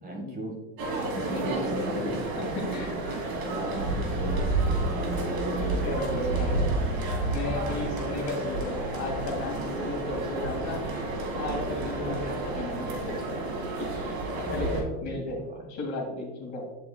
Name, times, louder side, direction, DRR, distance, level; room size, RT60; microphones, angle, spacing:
voice 1, 0.0-0.5 1.1-2.8 3.4-6.0 6.3-6.6 11.9-12.8 14.5-15.6, right 2 dB, 20° right, 1 dB, 1.5 m, -37 dB
sound 1, 0.8-14.8, right 2 dB, 60° right, 2.2 m, -30 dB
voice 2, 1.3-1.9 2.4-2.9 3.7-3.9 5.6-6.6 6.9-10.8 11.3-13.3 14.5-15.4 15.7-16.6, left 2 dB, 45° left, -1 dB, 2.2 m, -34 dB
8.2 x 6.9 x 2.3 m, 1.2 s
supercardioid pair, 115°, 40 cm